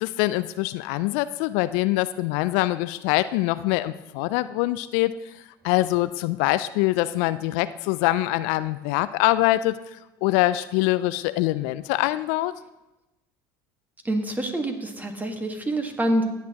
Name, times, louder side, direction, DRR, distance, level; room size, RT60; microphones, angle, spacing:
voice 1, 0.0-5.1 5.6-9.8 10.2-12.5, left 17 dB, 70° left, 15 dB, 0.4 m, -24 dB
voice 2, 14.0-16.2, right 1 dB, 15° right, 5 dB, 1.6 m, -26 dB
15.5 x 8.3 x 2.9 m, 0.98 s
hypercardioid pair, 80°, 11 cm